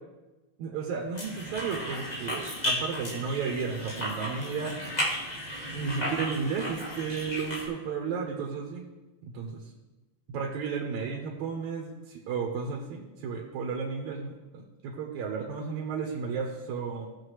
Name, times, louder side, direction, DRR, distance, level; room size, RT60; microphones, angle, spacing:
voice 1, 0.6-4.8 5.7-8.8 9.2-9.6 10.3-17.1, right 5 dB, 80° right, 0 dB, 2.4 m, -33 dB
sound 1, 1.1-7.7, equal, 20° left, 1.3 m, -34 dB
15.5 x 7.2 x 3.2 m, 1.1 s
omnidirectional pair, 3.3 m